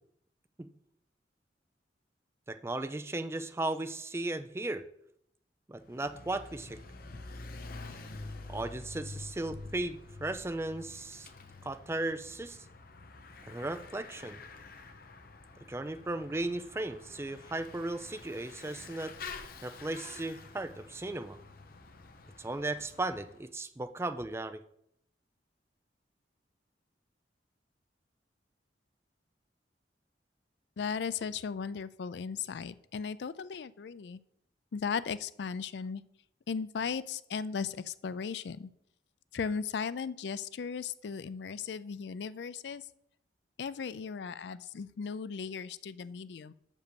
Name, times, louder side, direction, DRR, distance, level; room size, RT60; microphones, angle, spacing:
voice 1, 2.5-4.8 5.7-6.8 8.5-11.3 11.6-12.6 13.5-14.4 15.7-19.1 19.6-21.4 22.4-24.6, right 2 dB, 15° right, 10 dB, 0.4 m, -36 dB
Bicycle / Mechanisms, 5.8-23.4, left 3 dB, 55° left, 0.8 m, -48 dB
voice 2, 30.8-34.2 34.7-36.0 36.5-38.7 39.3-42.8 43.6-46.5, left 6 dB, 70° left, 16 dB, 0.4 m, -36 dB
6.3 x 5.3 x 6.9 m, 0.74 s
head